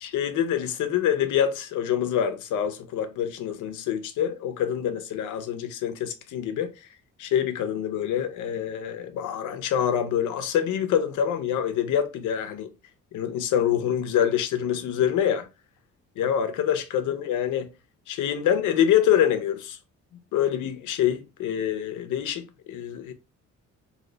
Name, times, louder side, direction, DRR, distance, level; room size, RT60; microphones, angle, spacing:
voice 1, 0.0-6.7 7.2-12.7 13.1-15.5 16.2-17.7 18.1-19.8 20.3-23.1, left 9 dB, 80° left, 0.6 m, -26 dB
2.7 x 2.0 x 3.8 m
cardioid pair, 90°, 30 cm